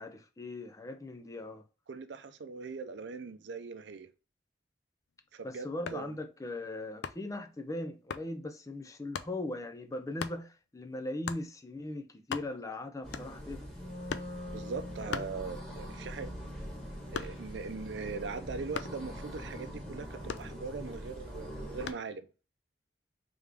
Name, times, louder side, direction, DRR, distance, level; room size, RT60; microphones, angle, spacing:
voice 1, 0.0-1.7 5.4-13.9 15.0-15.2, left 2 dB, 20° left, 0.5 m, -39 dB
voice 2, 1.9-4.1 5.3-6.1 14.5-16.3 17.1-22.3, right 4 dB, 85° right, 0.5 m, -41 dB
sound 1, 5.8-6.1 7.0-7.4 8.1-8.3 9.1-9.4 10.2-10.4 11.3-11.5 11.9-12.0 12.2-12.7 13.1-13.5 14.1-14.4 15.1-15.9 16.2-17.6 18.7-19.1 20.3-21.0 21.9-22.1, left 6 dB, 85° left, 0.4 m, -40 dB
sound 2, 13.0-21.9, equal, 5° left, 1.5 m, -44 dB
Wind instrument woodwind instrument, 13.7-19.4, left 1 dB, 60° left, 1.6 m, -47 dB
3.6 x 3.4 x 3.3 m
head